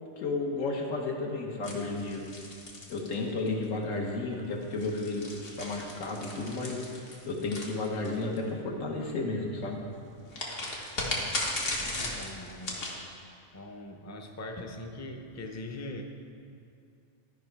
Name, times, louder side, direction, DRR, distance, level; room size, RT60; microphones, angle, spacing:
voice 1, 0.2-2.2 2.9-5.3 5.6-6.8 7.2-9.8, left 3 dB, 90° left, 0 dB, 1.5 m, -32 dB
sound 1, 1.6-3.6 4.6-8.4 10.3-13.0, left 2 dB, 75° left, 1.7 m, -36 dB
voice 2, 11.8-12.9 13.5-16.0, left 2 dB, 25° left, 3 dB, 0.3 m, -41 dB
12.5 x 5.5 x 4.6 m, 2.6 s
omnidirectional pair, 1.3 m